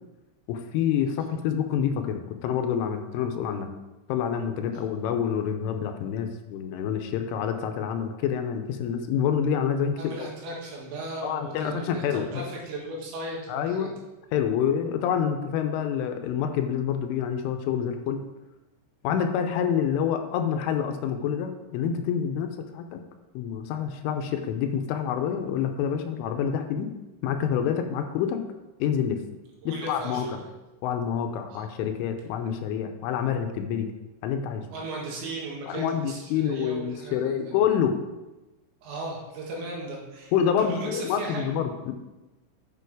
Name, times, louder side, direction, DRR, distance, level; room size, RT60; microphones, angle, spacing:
voice 1, 0.5-3.7 4.1-10.3 11.2-12.4 13.5-13.9 14.3-18.2 19.0-23.0 23.4-26.9 27.2-28.4 28.8-29.2 29.7-30.4 30.8-33.9 34.2-34.7 35.7-38.0 40.3-41.9, left 8 dB, 85° left, 6 dB, 3.2 m, -27 dB
voice 2, 10.0-13.9 29.6-30.5 31.5-31.7 34.7-37.5 38.8-40.3 40.6-41.5, right 2 dB, 70° right, -2 dB, 3.9 m, -37 dB
8.4 x 6.9 x 4.8 m, 1.1 s
omnidirectional pair, 5.7 m